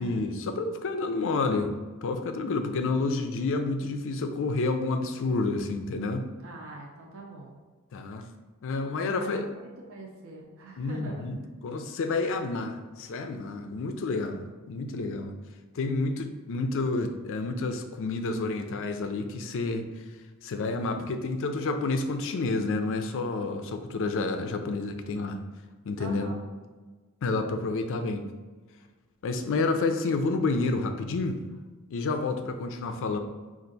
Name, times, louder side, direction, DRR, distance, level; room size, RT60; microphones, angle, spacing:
voice 1, 0.0-6.3 7.9-8.2 8.6-9.5 10.8-15.3 15.7-19.9 20.4-25.4 25.9-26.3 27.2-28.3 29.2-31.4 31.9-33.2, left 3 dB, 60° left, 7 dB, 0.4 m, -29 dB
voice 2, 6.4-7.6 9.0-11.2 26.0-26.4, right 2 dB, 65° right, -1 dB, 0.6 m, -42 dB
4.4 x 2.5 x 3.9 m, 1.3 s
head